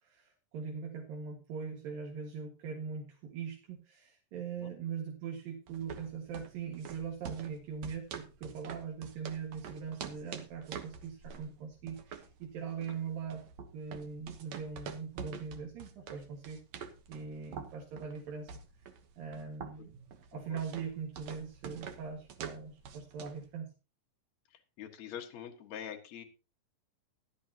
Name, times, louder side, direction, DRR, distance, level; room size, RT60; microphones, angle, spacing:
voice 1, 0.0-13.4 13.7-16.6 17.1-18.5 19.2-19.9 20.3-23.7, right 6 dB, 80° right, 1 dB, 3.5 m, -41 dB
sound 1, 5.7-23.5, right 6 dB, 60° right, 2.2 m, -47 dB
voice 2, 24.8-26.2, left 9 dB, 55° left, 2 dB, 2.6 m, -44 dB
16.0 x 11.5 x 2.9 m, 0.31 s
omnidirectional pair, 4.0 m